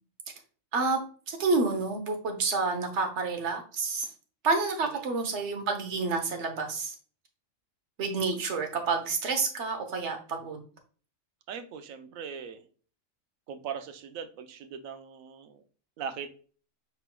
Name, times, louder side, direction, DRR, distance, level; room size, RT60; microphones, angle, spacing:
voice 1, 1.3-4.1 4.4-6.9 8.0-10.6, right 4 dB, 60° right, 4 dB, 1.2 m, -29 dB
voice 2, 11.5-12.6 13.5-15.6 16.0-16.3, right 7 dB, 85° right, 8 dB, 1.0 m, -40 dB
5.4 x 4.0 x 2.2 m, 0.40 s
omnidirectional pair, 1.4 m